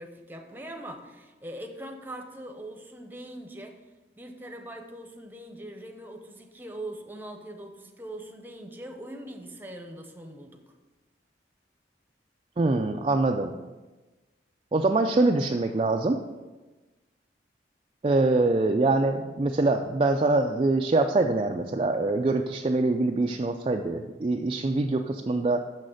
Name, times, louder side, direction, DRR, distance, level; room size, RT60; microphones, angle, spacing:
voice 1, 0.0-3.8 4.2-10.6, right 1 dB, 10° right, 4 dB, 0.8 m, -41 dB
voice 2, 12.6-13.5 14.7-16.2 18.0-25.6, right 2 dB, 30° right, 3 dB, 0.4 m, -24 dB
6.5 x 6.3 x 6.4 m, 1.2 s
head